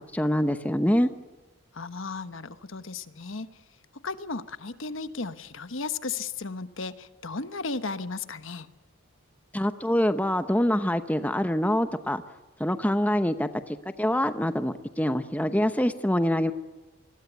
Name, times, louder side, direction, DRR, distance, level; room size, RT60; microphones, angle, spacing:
voice 1, 0.1-1.1 9.5-12.2 12.6-16.5, equal, 5° left, 10 dB, 0.8 m, -25 dB
voice 2, 1.7-3.5 3.9-8.7, left 4 dB, 65° left, 12 dB, 1.2 m, -35 dB
28.0 x 21.0 x 8.2 m, 1.1 s
head